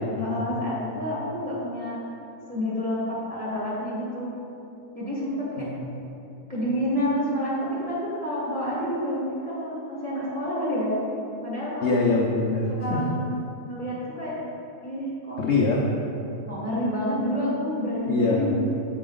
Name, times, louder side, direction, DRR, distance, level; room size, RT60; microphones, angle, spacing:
voice 1, 0.2-2.0 2.5-4.3 4.9-5.7 6.5-10.9 11.4-11.8 12.7-13.3 13.6-14.3 14.8-15.4 16.5-18.5, equal, 20° right, -7 dB, 1.3 m, -28 dB
voice 2, 5.6-5.9 11.8-13.0 15.4-15.9 18.1-18.5, left 3 dB, 80° left, -3 dB, 0.6 m, -24 dB
6.9 x 4.8 x 3.8 m, 2.8 s
omnidirectional pair, 2.0 m